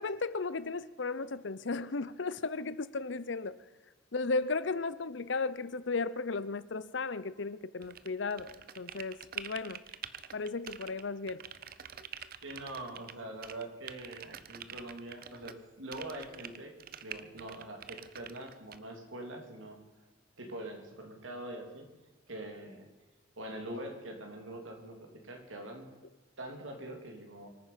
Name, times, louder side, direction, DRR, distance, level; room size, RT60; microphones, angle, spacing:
voice 1, 0.0-3.6 4.1-9.8 10.3-11.4, left 3 dB, 70° left, 0.7 m, -35 dB
sound 1, 7.8-11.0 11.3-13.1 13.4-15.6 15.9-18.8, right 9 dB, 50° right, 0.7 m, -46 dB
voice 2, 12.4-16.7 17.0-19.8 20.4-21.9 22.3-22.9 23.4-25.9 26.4-27.5, right 1 dB, 90° right, 3.3 m, -44 dB
25.0 x 9.5 x 5.7 m
head